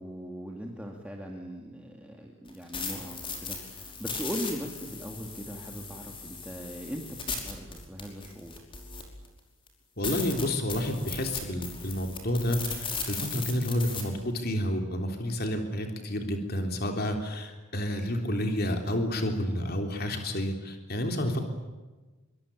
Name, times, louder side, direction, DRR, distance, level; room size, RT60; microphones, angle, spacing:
voice 1, 0.0-8.5, equal, 5° right, 0 dB, 2.5 m, -39 dB
sound 1, 2.5-9.3 9.7-9.8 10.0-14.0, left 5 dB, 25° left, 5.3 m, -37 dB
voice 2, 10.0-21.4, left 1 dB, 45° left, 4 dB, 3.5 m, -30 dB
26.5 x 24.0 x 8.9 m, 1.2 s
head